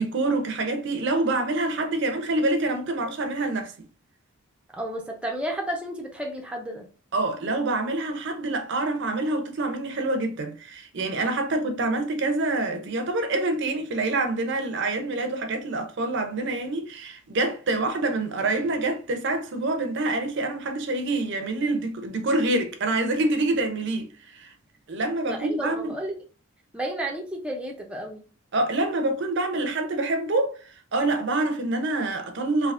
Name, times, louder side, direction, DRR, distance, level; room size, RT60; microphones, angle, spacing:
voice 1, 0.0-3.7 7.1-24.5 24.9-25.9 28.5-32.7, right 2 dB, 55° right, 0.5 m, -26 dB
voice 2, 4.7-6.9 25.3-26.1 26.7-28.2, right 1 dB, 5° right, 0.5 m, -32 dB
3.4 x 2.9 x 2.4 m
head